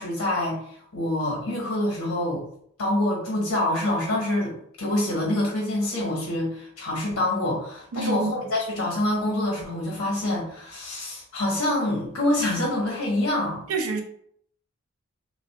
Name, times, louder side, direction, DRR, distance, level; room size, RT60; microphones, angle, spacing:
voice 1, 0.0-2.4 2.8-13.6, left 1 dB, 70° left, -2 dB, 1.2 m, -26 dB
voice 2, 7.9-8.3 13.7-14.0, right 4 dB, 80° right, 4 dB, 0.5 m, -26 dB
3.4 x 2.4 x 2.3 m, 0.66 s
head